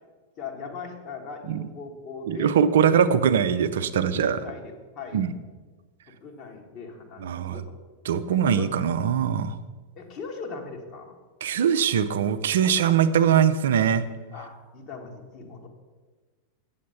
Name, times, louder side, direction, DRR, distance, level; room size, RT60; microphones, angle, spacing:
voice 1, 0.4-2.5 2.9-3.2 4.2-5.2 6.1-7.8 8.3-8.7 9.9-11.2 14.3-15.7, left 4 dB, 40° left, 2 dB, 1.5 m, -39 dB
voice 2, 2.3-4.4 5.1-5.3 7.2-7.6 8.1-9.6 11.4-14.0, right 8 dB, 60° right, 12 dB, 0.5 m, -22 dB
8.5 x 7.1 x 5.4 m, 1.3 s
figure-of-eight pair, 90°, 0 cm